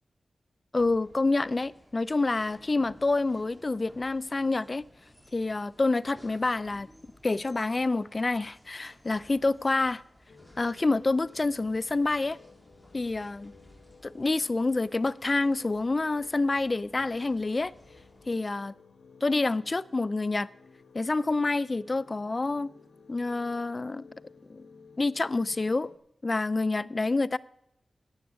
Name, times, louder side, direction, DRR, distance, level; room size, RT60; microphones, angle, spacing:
voice 1, 0.7-4.8 5.3-6.9 7.2-10.0 10.6-12.4 12.9-13.5 14.0-17.7 18.3-18.7 19.2-20.5 20.9-22.7 23.1-24.1 24.5-24.6 25.0-25.9 26.2-27.4, left 3 dB, 35° left, 0.4 m, -27 dB
sound 1, 0.8-18.4, equal, ahead, 2.6 m, -57 dB
sound 2, 10.3-26.0, left 4 dB, 85° left, 1.3 m, -56 dB
11.5 x 7.2 x 8.6 m
wide cardioid pair, 95°, 0 cm